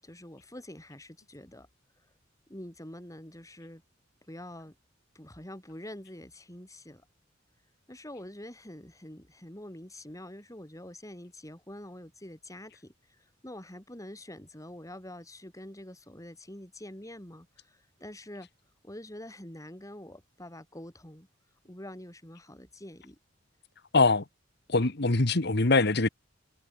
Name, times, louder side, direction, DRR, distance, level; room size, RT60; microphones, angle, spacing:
voice 1, 0.0-1.7 2.5-3.8 4.3-4.7 5.1-7.0 7.9-18.5 18.8-21.3 21.6-23.2, left 1 dB, 15° left, 6.7 m, -46 dB
voice 2, 23.9-24.2 24.7-26.1, left 3 dB, 60° left, 1.6 m, -23 dB
head